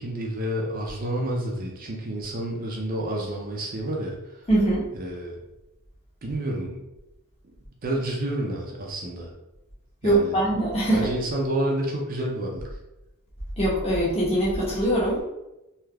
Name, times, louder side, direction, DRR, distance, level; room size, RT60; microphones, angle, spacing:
voice 1, 0.0-4.2 4.9-5.4 6.2-6.7 7.8-9.3 10.0-10.4 10.9-12.6, right 1 dB, 40° right, -1 dB, 0.5 m, -29 dB
voice 2, 4.5-4.8 10.0-11.1 13.6-15.2, right 1 dB, 25° left, -6 dB, 1.0 m, -22 dB
3.2 x 2.7 x 2.3 m, 0.95 s
head